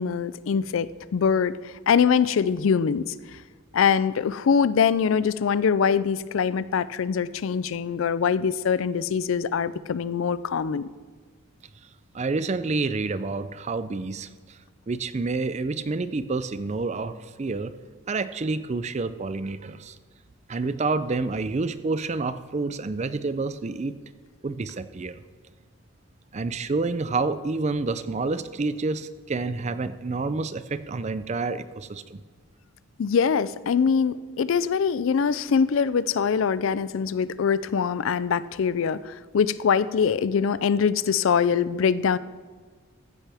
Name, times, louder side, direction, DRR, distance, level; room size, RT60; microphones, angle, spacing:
voice 1, 0.0-3.1 3.7-10.9 33.0-42.2, left 6 dB, 70° left, 17 dB, 0.4 m, -23 dB
voice 2, 12.1-14.6 14.9-17.7 18.1-20.0 20.5-24.0 24.4-25.2 26.3-32.2, right 3 dB, 35° right, 13 dB, 0.5 m, -28 dB
14.5 x 10.0 x 3.5 m, 1.5 s
head